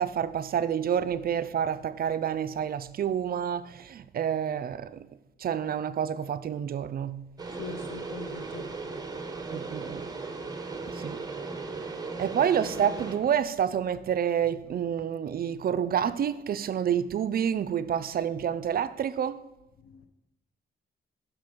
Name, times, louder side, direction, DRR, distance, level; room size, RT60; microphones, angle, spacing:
voice 1, 0.0-5.1 5.4-7.3 9.5-10.1 10.9-11.2 12.2-19.4, right 8 dB, 50° right, 0.4 m, -28 dB
sound 1, 7.4-13.2, right 3 dB, 20° right, 0.9 m, -37 dB
voice 2, 7.5-8.7 9.5-9.6 19.8-20.1, left 5 dB, 80° left, 0.6 m, -42 dB
6.1 x 6.0 x 5.0 m
cardioid pair, 90°, 20 cm